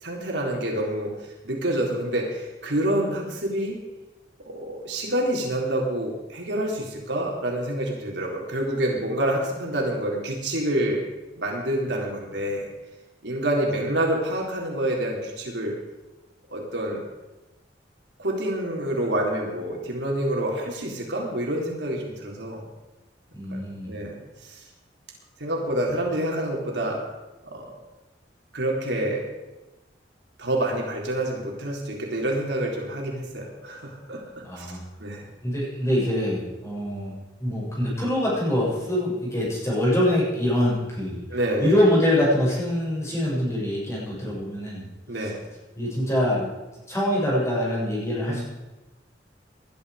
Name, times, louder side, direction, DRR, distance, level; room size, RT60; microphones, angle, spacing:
voice 1, 0.0-1.1 1.4-3.8 4.4-11.0 11.4-12.7 13.2-15.7 16.5-17.0 18.2-22.6 23.5-23.6 23.9-24.1 24.5-24.6 25.4-27.0 27.5-27.7 28.5-29.2 30.4-34.2 34.6-34.7 35.0-35.2 41.3-41.7 45.1-45.4 48.2-48.4, right 1 dB, 80° right, -1 dB, 3.9 m, -27 dB
voice 2, 23.3-23.9 34.4-34.8 35.4-44.8 45.2-45.3 45.8-46.5 46.9-48.4, left 1 dB, 15° left, -6 dB, 7.5 m, -24 dB
20.0 x 12.0 x 5.1 m, 1.1 s
head